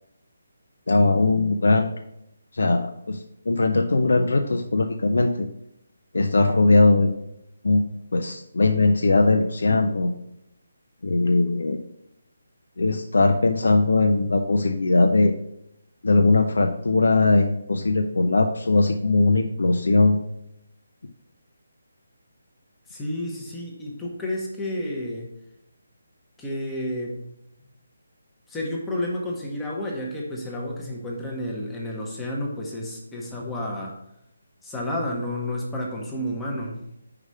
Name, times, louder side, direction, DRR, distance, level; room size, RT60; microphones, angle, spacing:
voice 1, 0.9-1.9 2.5-5.5 6.1-7.2 7.6-7.8 8.1-10.1 11.0-11.8 12.8-15.3 16.0-20.2, left 3 dB, 80° left, 4 dB, 0.6 m, -20 dB
voice 2, 22.9-25.3 26.4-27.2 28.5-34.0 34.6-36.8, left 1 dB, 5° left, -3 dB, 0.9 m, -31 dB
5.0 x 4.9 x 5.5 m, 0.81 s
hypercardioid pair, 170°, 0 cm